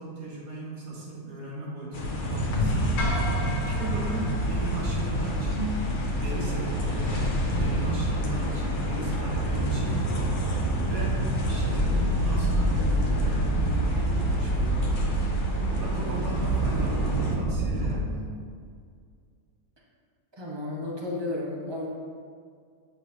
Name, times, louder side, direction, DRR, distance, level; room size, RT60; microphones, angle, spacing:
voice 1, 0.0-3.0 3.7-5.9 6.1-10.1 10.7-15.1 15.6-18.4, right 2 dB, 60° right, -5 dB, 1.7 m, -37 dB
sound 1, 1.9-17.4, left 2 dB, 45° left, 0.6 m, -31 dB
sound 2, 2.3-18.0, right 2 dB, 85° right, 1.4 m, -28 dB
sound 3, 3.0-5.3, left 2 dB, 85° left, 1.9 m, -36 dB
voice 2, 20.3-21.9, left 2 dB, 25° right, -4 dB, 0.7 m, -33 dB
8.1 x 5.0 x 2.7 m, 2.2 s
omnidirectional pair, 1.8 m